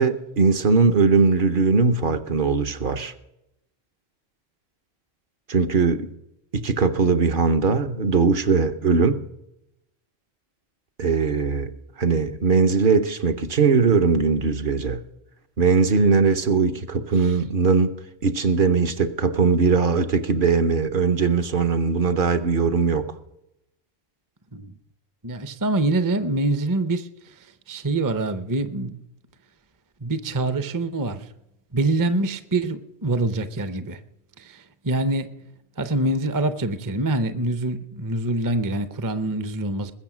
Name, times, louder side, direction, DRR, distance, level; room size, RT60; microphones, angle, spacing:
voice 1, 0.0-3.1 5.5-6.1 6.5-9.2 11.0-11.7 12.0-15.0 15.6-23.2, right 4 dB, 55° right, 0.9 m, -20 dB
voice 2, 25.2-27.1 27.7-29.0 30.0-31.3 31.7-34.0 34.4-35.4 35.8-39.9, right 2 dB, 25° right, 0.5 m, -25 dB
21.0 x 7.0 x 6.0 m
omnidirectional pair, 1.1 m